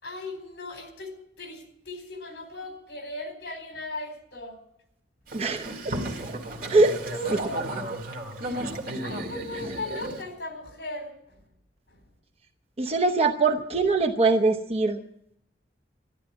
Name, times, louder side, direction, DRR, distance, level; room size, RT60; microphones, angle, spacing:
voice 1, 0.0-4.6 6.8-7.7 9.0-11.4 11.9-12.0, left 2 dB, 70° left, 5 dB, 4.2 m, -37 dB
voice 2, 5.3-6.0 6.3-6.4 6.7-7.0 7.3-7.4 12.8-15.0, right 3 dB, 35° right, 4 dB, 0.9 m, -23 dB
Boat Water vehicle, 5.3-10.2, right 1 dB, 55° right, 2.2 m, -34 dB
13.0 x 11.5 x 8.7 m, 0.77 s
head